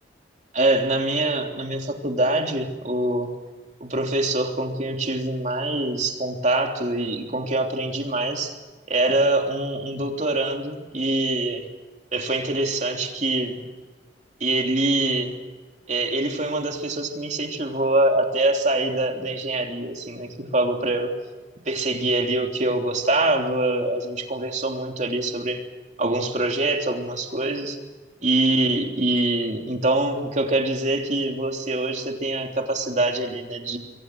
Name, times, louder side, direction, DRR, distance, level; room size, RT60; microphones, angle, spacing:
voice 1, 0.5-3.3 3.8-8.6 8.9-11.6 12.1-13.6 14.4-15.3 15.9-21.1 21.6-25.6 26.0-27.8 28.2-33.8, right 2 dB, 40° right, 3 dB, 3.3 m, -24 dB
27.5 x 23.5 x 6.3 m, 1.3 s
head